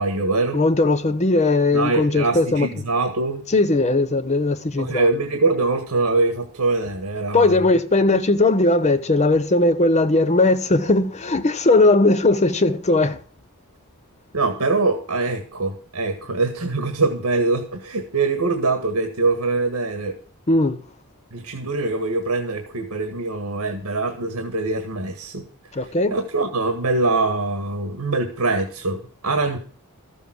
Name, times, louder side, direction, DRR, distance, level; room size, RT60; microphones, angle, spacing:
voice 1, 0.0-0.6 1.7-3.4 4.8-7.6 14.3-20.1 21.3-25.4 26.1-29.6, right 3 dB, 85° right, 1.7 m, -23 dB
voice 2, 0.5-2.7 3.5-5.1 7.3-13.2 20.5-20.8 25.7-26.2, left 2 dB, 30° left, 0.8 m, -18 dB
13.5 x 7.2 x 6.1 m
head